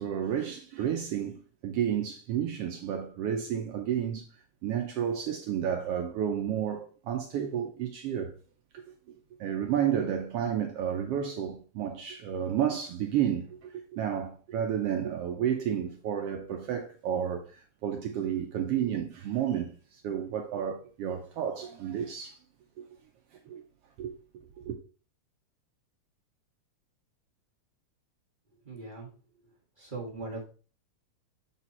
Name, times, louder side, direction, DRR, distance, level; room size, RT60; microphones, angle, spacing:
voice 1, 0.0-4.3 4.6-8.3 9.4-22.4 22.8-22.9 23.5-23.6 24.0-24.1 24.6-24.8, right 9 dB, 75° right, 1.4 m, -31 dB
voice 2, 28.6-29.1 29.8-30.4, right 3 dB, 30° right, 0.9 m, -39 dB
7.2 x 4.3 x 4.1 m
omnidirectional pair, 3.3 m